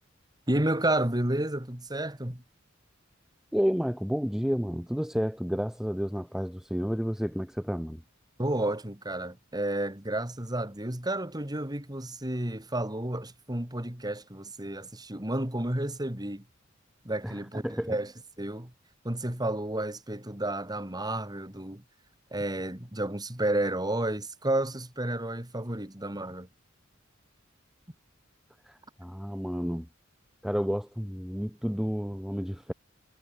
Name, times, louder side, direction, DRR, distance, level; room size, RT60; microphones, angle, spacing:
voice 1, 0.5-2.4 8.4-16.4 17.0-18.1 18.4-18.7 19.0-21.8 22.3-26.5, right 1 dB, 20° right, 3.0 m, -31 dB
voice 2, 3.5-8.0 17.2-17.4 17.6-18.0 28.7-29.9 30.4-32.7, equal, ahead, 1.1 m, -31 dB
head